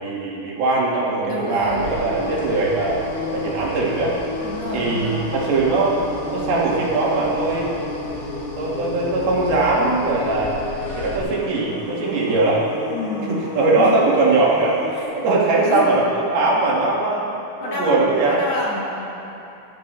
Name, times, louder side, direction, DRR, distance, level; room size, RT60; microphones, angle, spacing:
voice 1, 0.0-3.0 3.3-4.2 4.7-6.0 6.3-7.8 8.6-10.6 11.0-12.6 13.3-14.8 15.1-17.3 17.6-18.4, right 3 dB, 75° right, -5 dB, 3.9 m, -20 dB
voice 2, 1.2-1.8 4.4-5.2 12.9-13.4 13.8-14.0 14.9-15.1 15.5-16.0 17.6-18.0 18.2-19.1, left 1 dB, 50° left, -5 dB, 2.4 m, -28 dB
sound 1, 1.6-11.2, left 1 dB, 75° left, 0.8 m, -38 dB
sound 2, 1.8-15.0, left 2 dB, 35° left, 2.9 m, -32 dB
19.5 x 12.0 x 3.4 m, 2.8 s
omnidirectional pair, 4.4 m